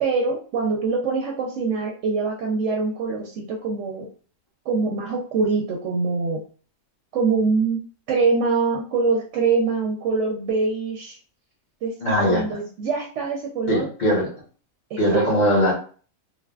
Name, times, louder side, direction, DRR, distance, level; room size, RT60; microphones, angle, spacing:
voice 1, 0.0-4.1 4.7-6.4 7.1-7.8 8.1-11.2 11.8-11.9 12.2-13.9 14.9-15.4, right 4 dB, 70° right, 1 dB, 0.8 m, -24 dB
voice 2, 12.0-12.4 13.7-14.3 15.0-15.7, equal, 40° left, -4 dB, 1.0 m, -20 dB
3.3 x 2.1 x 2.3 m, 0.41 s
omnidirectional pair, 1.4 m